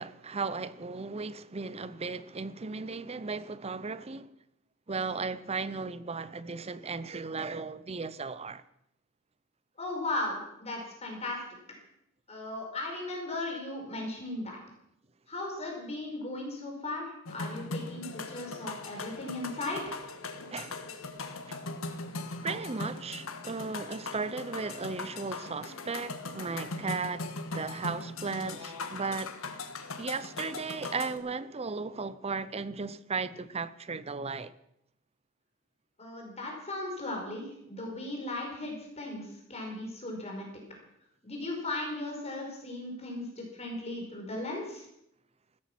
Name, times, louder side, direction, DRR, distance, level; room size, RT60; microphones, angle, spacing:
voice 1, 0.0-4.3 4.9-8.6 20.5-20.8 21.5-21.6 22.4-29.4 30.0-34.5, right 4 dB, 30° right, 0.7 m, -36 dB
voice 2, 9.8-11.4 12.3-14.6 15.3-19.9 36.0-40.5 41.2-44.8, left 2 dB, 30° left, 4.9 m, -37 dB
sound 1, 17.2-31.2, left 3 dB, 80° left, 1.6 m, -40 dB
16.0 x 13.5 x 6.1 m
head